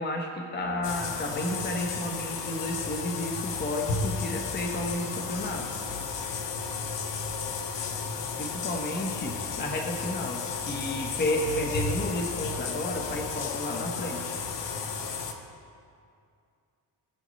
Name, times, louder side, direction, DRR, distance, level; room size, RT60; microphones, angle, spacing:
voice 1, 0.0-5.6 8.4-9.3 9.6-14.4, left 1 dB, 25° left, 1 dB, 1.2 m, -32 dB
sound 1, 0.8-15.3, left 5 dB, 75° left, 1.2 m, -33 dB
20.0 x 7.7 x 3.2 m, 2.4 s
cardioid pair, 115°, 43 cm